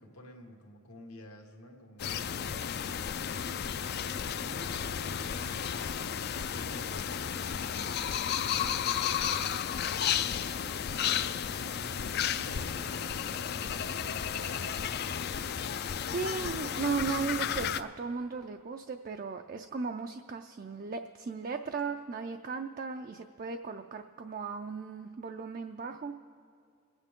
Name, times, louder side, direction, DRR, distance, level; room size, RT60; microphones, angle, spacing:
voice 1, 0.0-2.5 3.8-5.7 6.3-11.8 12.2-14.7, equal, 85° left, 2 dB, 1.6 m, -51 dB
sound 1, 2.0-17.8, left 8 dB, 45° left, 0.3 m, -33 dB
voice 2, 16.1-26.1, right 4 dB, 40° right, 5 dB, 0.4 m, -36 dB
26.5 x 9.0 x 3.6 m, 2.3 s
head